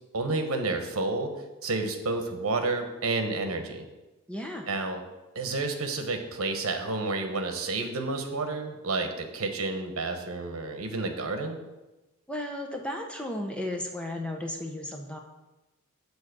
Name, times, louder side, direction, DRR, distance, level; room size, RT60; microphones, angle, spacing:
voice 1, 0.1-1.3 1.6-3.8 4.7-5.0 5.3-11.6, right 3 dB, 75° right, 6 dB, 1.0 m, -30 dB
voice 2, 4.3-4.7 12.3-15.2, left 1 dB, 5° left, 2 dB, 0.6 m, -34 dB
7.4 x 4.1 x 6.7 m, 1.1 s
head